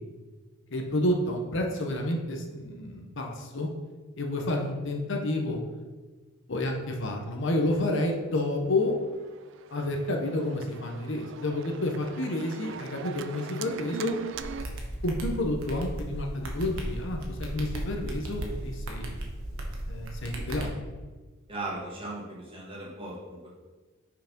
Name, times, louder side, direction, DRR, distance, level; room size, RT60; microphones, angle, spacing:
voice 1, 0.7-3.7 4.2-5.6 6.5-9.0 9.7-14.2 15.0-19.2 19.9-20.8, left 1 dB, 60° left, 2 dB, 0.9 m, -30 dB
Organ, 8.8-14.7, right 7 dB, 60° right, 0.4 m, -42 dB
sound 1, 14.3-20.7, right 1 dB, 85° right, 1.2 m, -36 dB
voice 2, 21.5-23.5, right 2 dB, 25° right, -5 dB, 1.8 m, -37 dB
5.8 x 4.8 x 5.2 m, 1.3 s
head